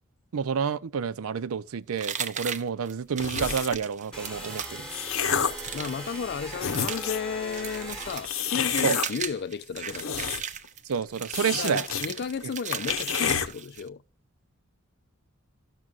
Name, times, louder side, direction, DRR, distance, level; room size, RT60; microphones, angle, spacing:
voice 1, 0.3-4.9 8.8-9.0 10.9-11.8, right 6 dB, 85° right, 0.4 m, -29 dB
sound 1, 2.0-13.9, right 8 dB, 35° right, 0.6 m, -37 dB
sound 2, 3.2-3.9 4.5-5.7 6.2-6.3 6.6-7.3 8.2-9.1 9.8-10.7 10.9-11.0 11.3-12.1 12.4-12.5 12.7-13.5, left 7 dB, 70° left, 0.8 m, -29 dB
sound 3, 4.1-8.5, equal, 5° left, 1.1 m, -40 dB
voice 2, 5.7-10.3 11.5-14.0, left 6 dB, 50° left, 0.4 m, -33 dB
13.5 x 6.1 x 2.4 m
head